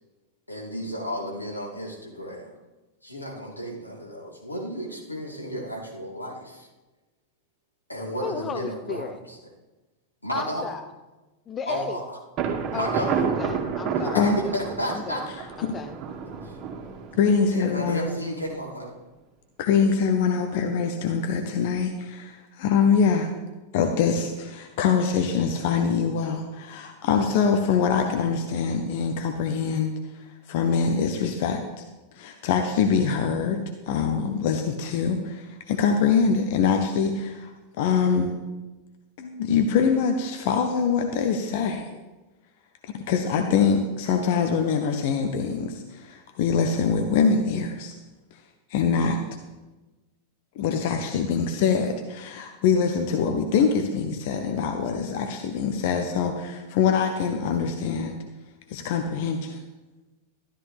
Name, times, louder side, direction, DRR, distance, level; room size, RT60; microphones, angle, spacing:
voice 1, 0.5-2.5 3.0-6.7 7.9-9.1 10.2-10.7 11.7-12.2 12.7-13.2 14.1-15.2 16.4-16.6 17.5-18.9, equal, 85° left, -3 dB, 2.8 m, -32 dB
voice 2, 8.2-9.2 10.3-10.9 11.5-12.0 12.7-14.6 14.9-15.3 15.6-16.0, left 6 dB, 25° left, 9 dB, 0.6 m, -34 dB
Thunder, 12.4-18.0, right 6 dB, 35° right, 2.0 m, -30 dB
voice 3, 17.2-18.1 19.6-23.3 23.7-31.8 32.1-37.5 37.8-38.3 39.2-41.9 43.1-47.9 48.7-49.2 50.6-58.2 58.7-59.6, left 6 dB, 50° left, 6 dB, 1.0 m, -24 dB
13.0 x 13.0 x 3.4 m, 1.1 s
figure-of-eight pair, 90°, 0 cm